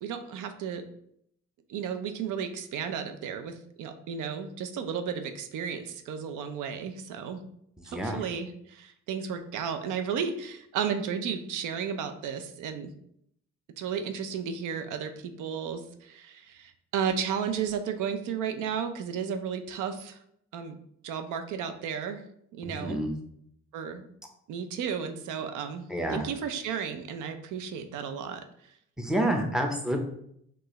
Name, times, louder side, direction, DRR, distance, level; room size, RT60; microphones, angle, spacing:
voice 1, 0.0-0.8 1.7-7.4 7.8-12.9 13.8-20.2 20.5-20.7 21.0-22.2 22.5-23.0 23.7-24.1 24.5-25.8 26.1-28.4, right 7 dB, 85° right, 8 dB, 0.5 m, -33 dB
voice 2, 7.8-8.2 22.8-23.1 25.9-26.3 29.0-30.0, right 1 dB, ahead, 2 dB, 0.7 m, -28 dB
4.6 x 2.5 x 3.0 m, 0.71 s
cardioid pair, 90°, 30 cm